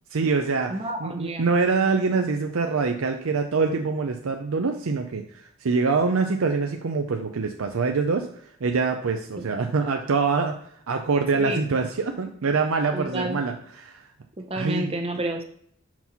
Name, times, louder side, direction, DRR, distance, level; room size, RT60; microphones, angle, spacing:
voice 1, 0.1-10.5 10.9-14.0 14.5-14.9, right 4 dB, 75° right, 4 dB, 0.5 m, -25 dB
voice 2, 0.7-1.5 9.4-9.5 11.3-11.6 12.9-13.4 14.4-15.4, right 1 dB, 25° right, 5 dB, 0.7 m, -30 dB
6.0 x 4.4 x 5.6 m, 0.67 s
head